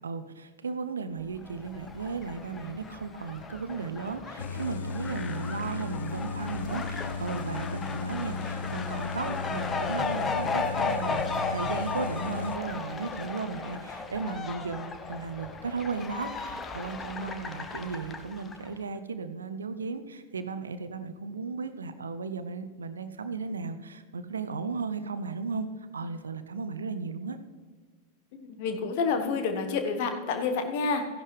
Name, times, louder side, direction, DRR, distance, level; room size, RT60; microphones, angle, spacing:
voice 1, 0.0-25.7 25.9-27.4, right 4 dB, 70° right, 11 dB, 0.7 m, -35 dB
Fowl, 1.3-18.7, left 4 dB, 20° left, 0.8 m, -35 dB
sound 1, 4.4-12.6, left 4 dB, 70° left, 0.4 m, -36 dB
voice 2, 28.3-31.1, left 4 dB, 50° left, 6 dB, 1.3 m, -29 dB
14.5 x 11.0 x 3.3 m, 1.5 s
figure-of-eight pair, 90°, 0 cm